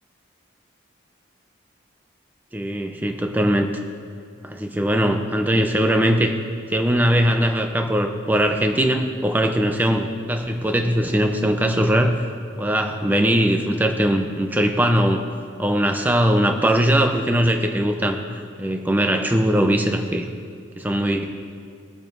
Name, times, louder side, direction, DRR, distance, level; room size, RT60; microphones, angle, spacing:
voice 1, 2.5-3.7 4.5-6.4 6.7-12.2 12.6-15.2 15.6-20.3 20.8-21.3, equal, 10° right, 5 dB, 0.5 m, -20 dB
19.5 x 7.4 x 2.6 m, 2.2 s
head